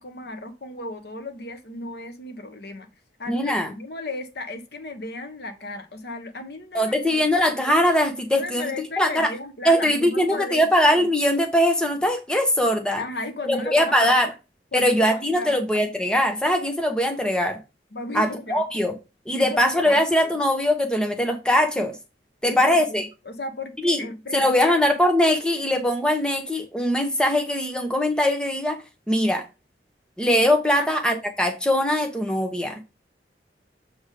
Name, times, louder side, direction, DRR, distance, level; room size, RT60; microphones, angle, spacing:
voice 1, 0.0-2.9 3.2-7.1 8.1-10.7 10.9-11.0 13.0-14.3 14.7-15.6 17.9-18.6 19.3-20.0 22.4-24.7 30.7-30.9, left 2 dB, 65° left, 1.1 m, -35 dB
voice 2, 3.3-3.7 6.7-8.6 9.0-9.3 9.6-13.0 13.5-14.3 14.7-17.6 18.1-18.9 19.3-21.9 22.4-23.0 23.8-24.0 24.3-28.8 29.1-29.4 30.2-32.8, equal, 5° left, 0.9 m, -21 dB
7.1 x 3.6 x 4.9 m
head